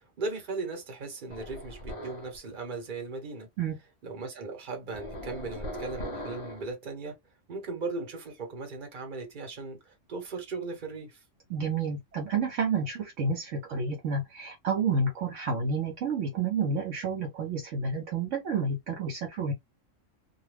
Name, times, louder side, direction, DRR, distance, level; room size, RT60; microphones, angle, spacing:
voice 1, 0.0-3.5 4.0-7.2 7.5-11.2, right 3 dB, 40° right, 1.0 m, -37 dB
sound 1, 1.3-2.4 4.9-6.7, equal, 30° left, 0.7 m, -39 dB
voice 2, 11.5-19.5, right 4 dB, 70° right, 0.9 m, -30 dB
2.3 x 2.2 x 3.2 m
omnidirectional pair, 1.4 m